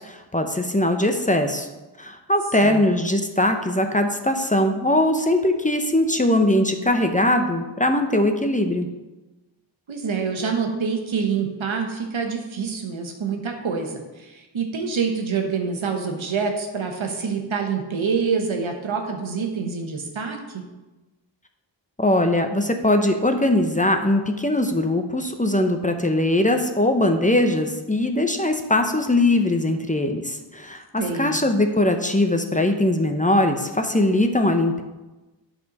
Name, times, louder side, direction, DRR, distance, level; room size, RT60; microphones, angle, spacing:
voice 1, 0.0-1.7 2.0-8.9 22.0-34.8, left 1 dB, 15° left, 5 dB, 0.8 m, -21 dB
voice 2, 9.9-20.6 31.0-31.4, right 5 dB, 85° right, 3 dB, 1.2 m, -26 dB
8.3 x 4.4 x 5.3 m, 1.1 s
wide cardioid pair, 55°, 46 cm